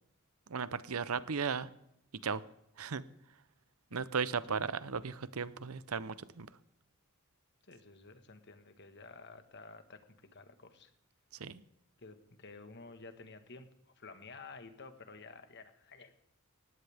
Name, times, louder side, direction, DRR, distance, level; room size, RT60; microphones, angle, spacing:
voice 1, 0.5-1.7 2.2-2.4 2.8-3.0 3.9-6.5 11.4-11.6, right 5 dB, 80° right, 16 dB, 0.8 m, -36 dB
voice 2, 7.7-10.9 12.0-16.1, left 3 dB, 55° left, 8 dB, 1.6 m, -52 dB
18.5 x 16.0 x 3.6 m, 0.78 s
head